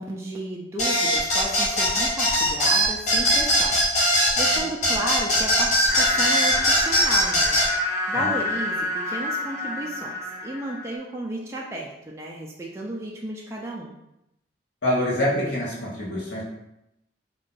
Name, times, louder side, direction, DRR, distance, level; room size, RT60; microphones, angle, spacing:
voice 1, 0.0-7.6 8.1-13.9, right 1 dB, 15° right, -3 dB, 0.3 m, -33 dB
sound 1, 0.8-7.7, equal, 45° left, 0.7 m, -20 dB
sound 2, 5.9-10.9, left 2 dB, 15° left, 0.8 m, -28 dB
voice 2, 14.8-16.4, left 1 dB, 80° left, -6 dB, 1.0 m, -25 dB
2.6 x 2.3 x 3.8 m, 0.85 s
head